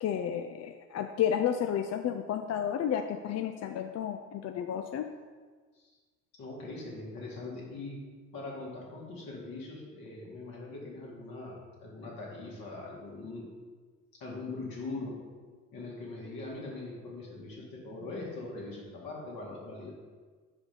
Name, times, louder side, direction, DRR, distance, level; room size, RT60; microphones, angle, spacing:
voice 1, 0.0-5.0, left 9 dB, 45° left, 6 dB, 0.5 m, -31 dB
voice 2, 6.4-13.5 14.2-15.3 15.7-19.9, left 2 dB, 65° left, -4 dB, 2.1 m, -41 dB
5.4 x 5.0 x 5.1 m, 1.5 s
hypercardioid pair, 45°, 37 cm